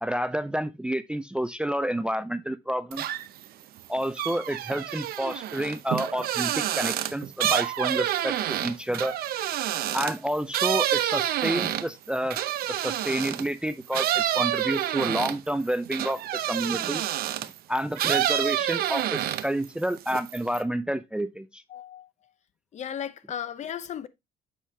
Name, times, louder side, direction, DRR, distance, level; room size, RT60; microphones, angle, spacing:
voice 1, 0.0-3.0 3.9-9.1 9.9-12.4 12.7-17.0 17.7-21.6, equal, 5° right, 0.4 m, -29 dB
sound 1, 2.9-3.4 3.8-13.5 13.9-17.6 17.9-19.6 20.0-20.6, right 12 dB, 65° right, 0.6 m, -28 dB
voice 2, 21.7-22.1 22.7-24.1, left 9 dB, 45° left, 0.6 m, -35 dB
7.4 x 4.4 x 3.3 m
cardioid pair, 110°, 17 cm